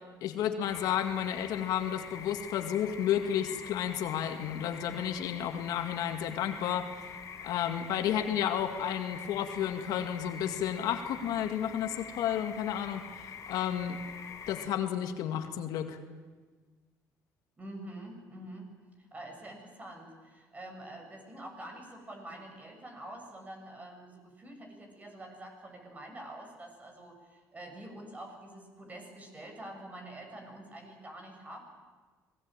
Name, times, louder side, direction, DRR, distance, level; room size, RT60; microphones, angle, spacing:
voice 1, 0.2-7.2 7.4-14.0 14.5-16.0, left 10 dB, 75° left, 7 dB, 2.1 m, -32 dB
sound 1, 0.6-14.7, left 6 dB, 55° left, 3.7 m, -45 dB
voice 2, 17.6-18.7 19.0-31.6, right 1 dB, 25° right, 3 dB, 7.3 m, -46 dB
26.0 x 19.5 x 9.1 m, 1.4 s
cardioid pair, 100°, 6 cm